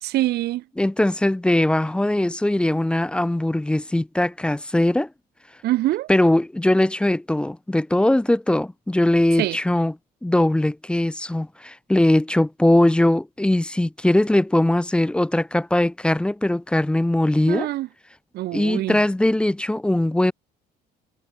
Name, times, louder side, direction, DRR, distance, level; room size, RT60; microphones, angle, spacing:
voice 1, 0.0-0.6 5.6-6.1 9.4-9.6 17.5-17.9 18.3-19.0, right 16 dB, 75° right, 1.2 m, -24 dB
voice 2, 0.8-5.1 6.1-9.9 10.2-17.7 18.5-20.3, left 1 dB, 5° left, 0.5 m, -20 dB
cardioid pair, 110°, 17 cm